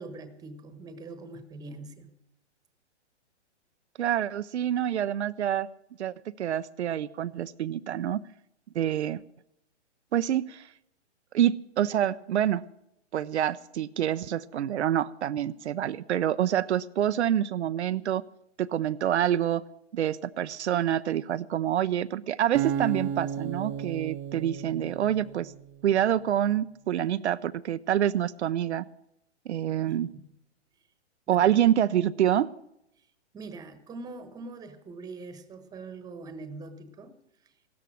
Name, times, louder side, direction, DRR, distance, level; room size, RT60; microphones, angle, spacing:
voice 1, 0.0-2.1 29.8-30.2 31.3-31.5 33.3-37.2, right 3 dB, 10° right, 10 dB, 1.3 m, -43 dB
voice 2, 4.0-5.7 6.0-8.2 8.7-9.2 10.1-10.7 11.3-12.6 13.1-18.2 18.6-19.6 19.9-25.5 25.8-28.9 29.5-30.1 31.3-32.5, right 11 dB, 70° right, 12 dB, 0.6 m, -27 dB
Acoustic guitar, 22.5-25.8, right 9 dB, 30° right, 0.9 m, -33 dB
16.5 x 13.0 x 6.3 m, 0.81 s
hypercardioid pair, 145°, 35 cm